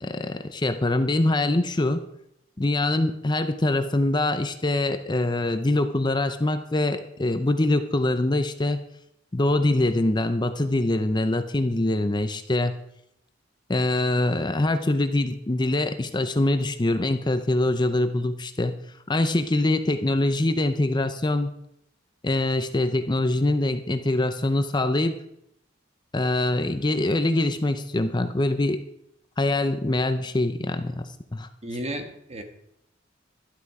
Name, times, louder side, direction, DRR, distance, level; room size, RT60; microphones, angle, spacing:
voice 1, 0.0-2.0 2.6-8.8 9.3-12.7 13.7-18.7 19.1-21.6 22.2-25.2 26.1-28.8 29.4-31.5, left 2 dB, 25° left, 8 dB, 0.6 m, -24 dB
voice 2, 31.6-32.4, right 1 dB, 35° right, 6 dB, 1.5 m, -33 dB
12.5 x 11.5 x 4.9 m, 0.76 s
head